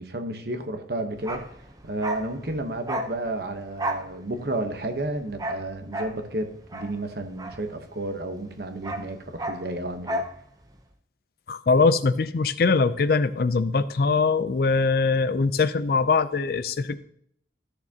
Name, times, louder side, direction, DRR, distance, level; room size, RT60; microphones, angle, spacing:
voice 1, 0.0-1.4 1.8-10.2, right 1 dB, 55° right, 6 dB, 1.0 m, -31 dB
Bark, 1.2-8.2 8.5-10.4 10.6-10.8, right 1 dB, 20° right, 0.7 m, -34 dB
voice 2, 11.5-17.0, left 4 dB, 55° left, 14 dB, 0.4 m, -22 dB
13.0 x 6.7 x 2.8 m, 0.66 s
head